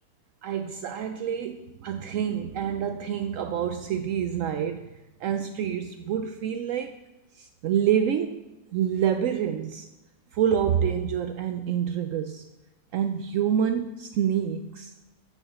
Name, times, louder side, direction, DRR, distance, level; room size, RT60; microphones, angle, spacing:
voice 1, 0.4-4.9 5.2-7.0 7.3-8.4 8.7-9.9 10.3-12.4 12.9-14.9, right 9 dB, 70° right, 8 dB, 0.9 m, -27 dB
8.6 x 6.8 x 6.9 m, 1.0 s
omnidirectional pair, 1.5 m